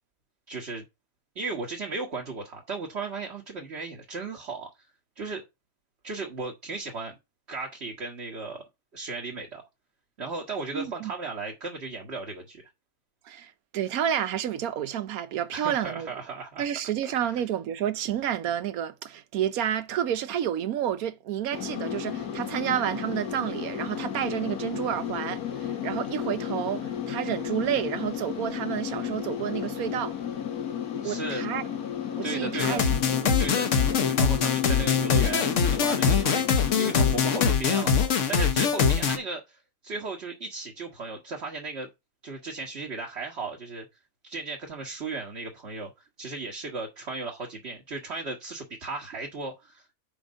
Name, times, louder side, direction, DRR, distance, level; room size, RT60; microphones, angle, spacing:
voice 1, 0.5-0.8 1.3-4.7 5.2-5.4 6.0-7.2 7.5-8.6 8.9-9.6 10.2-12.6 15.5-16.7 17.0-17.4 31.0-31.4 32.2-32.8 33.4-33.7 34.0-41.9 42.2-43.9 44.2-49.8, right 3 dB, 45° right, 1.6 m, -36 dB
voice 2, 10.7-11.1 13.3-16.1 16.6-30.1 31.0-31.6 32.2-32.9 33.2-33.3, right 10 dB, 75° right, 1.2 m, -30 dB
sound 1, 21.5-37.5, left 9 dB, 80° left, 1.7 m, -33 dB
sound 2, 32.6-39.2, left 6 dB, 60° left, 1.2 m, -23 dB
5.3 x 5.0 x 6.2 m
omnidirectional pair, 1.6 m